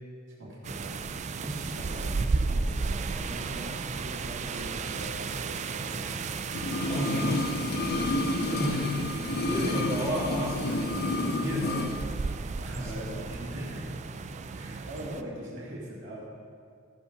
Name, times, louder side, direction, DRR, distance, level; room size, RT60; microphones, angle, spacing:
voice 1, 0.4-1.1 1.4-6.8 9.1-9.9 12.6-13.2 13.5-13.9 14.5-16.2, equal, 60° right, -6 dB, 2.3 m, -41 dB
sound 1, 0.6-15.2, right 4 dB, 35° right, 0.3 m, -34 dB
sound 2, 6.5-12.0 12.2-12.3, left 2 dB, 50° left, 0.5 m, -30 dB
voice 2, 6.8-7.8 8.5-12.0 12.8-12.9 13.3-13.7 14.3-14.4, equal, 15° right, -8 dB, 2.6 m, -33 dB
13.5 x 5.4 x 5.2 m, 2.2 s
head